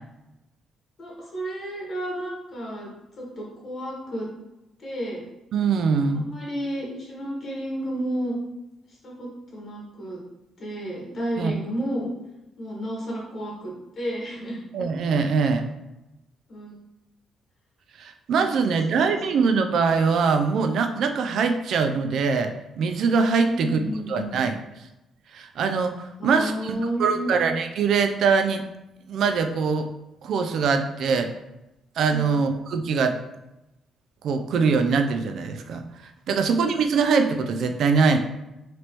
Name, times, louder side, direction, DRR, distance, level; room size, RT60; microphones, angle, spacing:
voice 1, 1.0-2.9 3.2-4.3 4.8-5.2 6.1-8.4 9.0-10.2 10.6-12.1 12.6-14.6 16.5-16.7 18.4-19.2 23.5-24.3 26.2-27.3 32.1-32.3, right 1 dB, 45° left, -3 dB, 1.3 m, -32 dB
voice 2, 5.5-6.2 11.4-11.5 14.7-15.7 18.0-23.8 24.1-24.6 25.3-28.6 29.1-29.9 30.2-31.3 32.0-33.2 34.2-35.8 36.3-38.2, right 5 dB, 70° right, 7 dB, 0.4 m, -23 dB
3.0 x 2.9 x 3.0 m, 0.92 s
cardioid pair, 90°, 0 cm